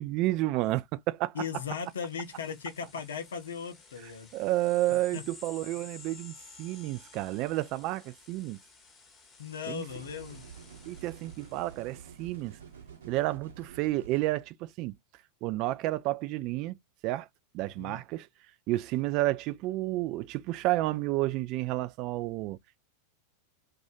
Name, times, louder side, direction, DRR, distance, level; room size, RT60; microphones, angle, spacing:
voice 1, 0.0-1.3 4.3-8.6 9.7-9.9 10.9-12.6 13.0-14.9 15.4-16.8 17.0-17.3 17.5-18.3 18.7-22.8, right 17 dB, 40° right, 0.3 m, -31 dB
voice 2, 1.3-4.3 5.1-5.2 9.4-10.4 17.6-18.0, left 7 dB, 65° left, 0.7 m, -37 dB
sound 1, 1.5-12.6, left 4 dB, 20° left, 0.8 m, -53 dB
sound 2, 9.9-14.3, right 7 dB, 65° right, 0.8 m, -49 dB
2.4 x 2.4 x 2.5 m
figure-of-eight pair, 90°, 0 cm